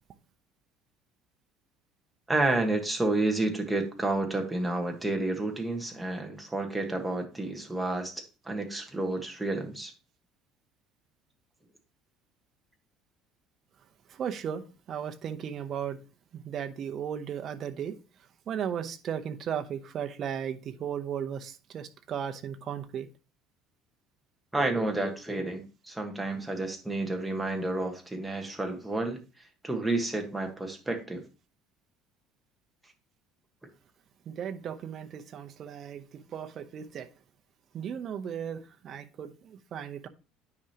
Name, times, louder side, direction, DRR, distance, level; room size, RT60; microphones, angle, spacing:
voice 1, 2.3-8.1 8.4-9.9 24.5-29.2 29.6-31.2, right 2 dB, 5° right, 1.4 m, -30 dB
voice 2, 14.2-16.0 16.3-18.0 18.5-23.1 34.3-37.1 37.7-40.1, right 8 dB, 40° right, 0.8 m, -36 dB
9.7 x 4.9 x 2.9 m
cardioid pair, 130°, 0 cm